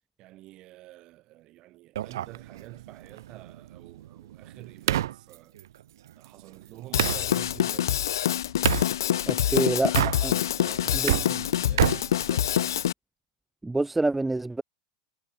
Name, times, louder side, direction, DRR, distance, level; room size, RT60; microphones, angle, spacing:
voice 1, 0.2-5.6 6.2-8.0 9.4-10.3 10.6-12.7, right 17 dB, 40° right, 4.9 m, -47 dB
sound 1, 2.0-7.3 8.6-8.9 9.8-10.6 10.9-12.9, right 12 dB, 80° right, 1.2 m, -29 dB
Drum kit / Drum, 6.9-12.9, left 11 dB, 85° left, 0.7 m, -26 dB
voice 2, 9.3-9.9 10.2-10.4 10.9-11.2 13.6-14.6, right 2 dB, 5° right, 0.5 m, -26 dB
supercardioid pair, 130°, 2 cm